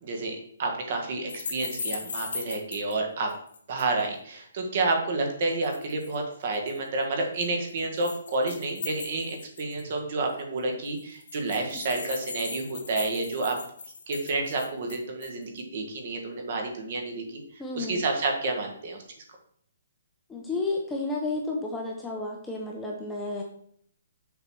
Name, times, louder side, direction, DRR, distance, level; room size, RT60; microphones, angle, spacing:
voice 1, 0.0-3.3 3.7-13.6 14.1-17.4 17.7-19.0, right 3 dB, 35° right, 3 dB, 1.5 m, -30 dB
sound 1, 1.3-2.9 3.3-4.0 5.4-6.2 6.5-6.8 7.4-9.9 10.3-10.4 10.6-10.7 10.9-15.4, left 4 dB, 60° left, 2.6 m, -38 dB
voice 2, 17.6-18.0 20.3-23.4, left 2 dB, 5° left, -1 dB, 0.6 m, -31 dB
7.1 x 4.0 x 6.1 m, 0.64 s
hypercardioid pair, 175°, 0 cm